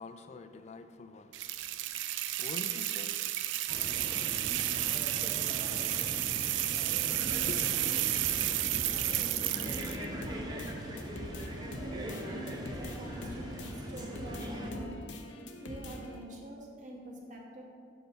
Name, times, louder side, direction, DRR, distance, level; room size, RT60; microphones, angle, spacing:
voice 1, 0.0-7.0 7.5-8.1, left 3 dB, 35° left, 0.3 m, -49 dB
sound 1, 1.3-10.0, right 14 dB, 80° right, 0.3 m, -32 dB
sound 2, 3.7-14.7, equal, 20° right, 0.7 m, -41 dB
sound 3, 7.2-16.2, left 1 dB, 85° left, 0.7 m, -44 dB
voice 2, 11.5-15.0 15.6-17.6, right 1 dB, 45° right, 1.1 m, -46 dB
6.4 x 4.6 x 5.1 m
head